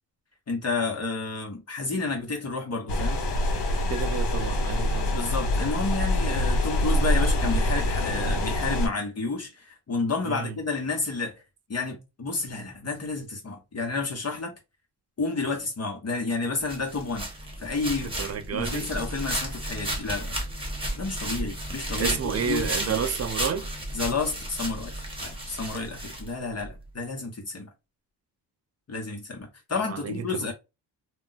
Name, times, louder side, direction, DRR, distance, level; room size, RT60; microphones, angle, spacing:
voice 1, 0.5-3.2 5.1-11.4 11.7-14.6 15.2-17.3 17.6-18.1 18.5-20.4 21.0-22.9 23.9-27.7 28.9-30.5, left 3 dB, 35° left, 0.9 m, -31 dB
sound 1, 2.9-8.9, left 1 dB, 75° left, 1.1 m, -25 dB
voice 2, 3.9-5.2 10.2-10.5 18.2-18.9 22.0-23.7 29.9-30.2, right 7 dB, 40° right, 0.5 m, -30 dB
sound 2, 16.7-26.7, right 1 dB, 10° right, 1.0 m, -33 dB
2.3 x 2.0 x 3.9 m
cardioid pair, 110°, 42 cm